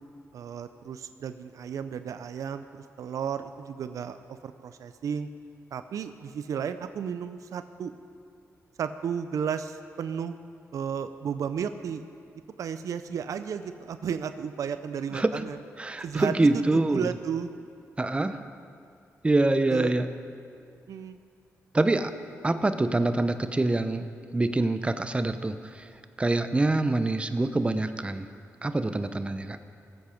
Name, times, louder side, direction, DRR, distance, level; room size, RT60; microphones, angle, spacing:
voice 1, 0.3-2.6 3.0-5.3 5.7-7.9 8.8-10.4 10.7-12.0 12.6-15.6 16.0-17.5 19.7-19.9 20.9-21.2, right 7 dB, 75° right, 10 dB, 0.5 m, -33 dB
voice 2, 15.1-15.5 15.8-17.1 18.0-18.4 19.2-20.1 21.7-22.1 22.4-24.1 24.3-25.8 26.2-28.3 28.6-29.6, right 2 dB, 20° right, 10 dB, 0.7 m, -25 dB
19.0 x 8.3 x 5.1 m, 2.3 s
cardioid pair, 75°, 6 cm